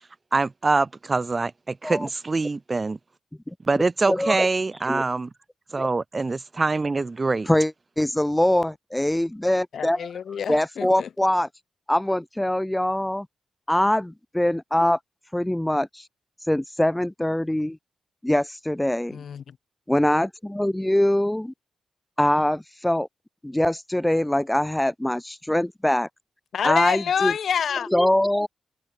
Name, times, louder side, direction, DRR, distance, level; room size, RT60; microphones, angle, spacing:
voice 1, 0.3-3.0 3.7-5.3 5.7-7.5, right 3 dB, 25° right, 1.3 m, -24 dB
voice 2, 4.1-4.5 4.9-5.0 5.8-5.9 7.5-10.1 10.5-11.5 11.9-13.3 13.7-15.0 15.3-16.1 16.5-17.8 18.2-19.2 19.9-21.5 22.2-23.1 23.4-26.1 26.6-27.3 27.9-28.5, left 1 dB, 5° left, 1.2 m, -23 dB
voice 3, 9.7-11.1 19.1-19.6 26.5-27.9, left 7 dB, 65° left, 5.4 m, -27 dB
wide cardioid pair, 120°, 0 cm